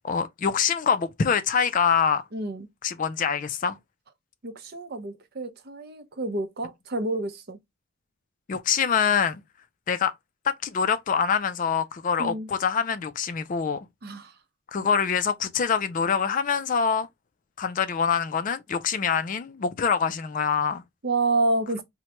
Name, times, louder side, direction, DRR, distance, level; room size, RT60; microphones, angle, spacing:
voice 1, 0.0-2.2 2.8-3.8 8.5-9.4 9.9-10.1 10.5-13.9 14.7-17.1 17.6-20.8, left 6 dB, 40° left, 0.3 m, -25 dB
voice 2, 2.3-2.7 4.4-7.6 12.2-12.5 14.0-14.3 21.0-21.8, right 2 dB, 50° right, 0.6 m, -28 dB
4.4 x 2.1 x 2.9 m
head